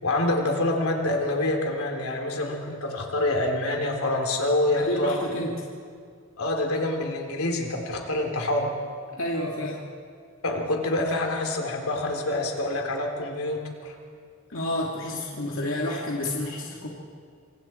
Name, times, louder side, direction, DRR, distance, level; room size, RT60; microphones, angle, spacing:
voice 1, 0.0-5.2 6.4-8.7 10.4-13.9, left 1 dB, 85° left, 2 dB, 3.6 m, -26 dB
voice 2, 4.7-5.6 9.1-9.8 14.5-16.9, left 1 dB, 65° left, -3 dB, 2.8 m, -29 dB
27.0 x 26.5 x 4.6 m, 2.2 s
head